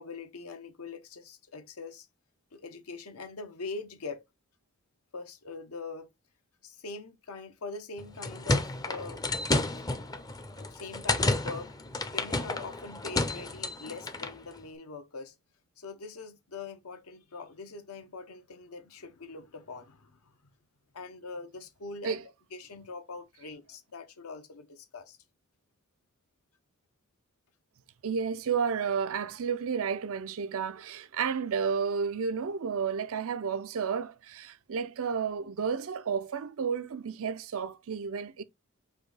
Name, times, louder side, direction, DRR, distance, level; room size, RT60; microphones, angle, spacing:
voice 1, 0.0-2.1 2.5-4.2 5.1-6.1 6.6-9.3 10.5-11.7 12.1-15.3 15.8-20.5 20.9-22.2 22.5-25.2, left 4 dB, 75° left, 1.0 m, -43 dB
sound 1, 8.0-14.4, left 2 dB, 15° left, 0.6 m, -31 dB
voice 2, 28.0-38.4, right 6 dB, 65° right, 0.5 m, -31 dB
5.0 x 2.7 x 3.9 m
head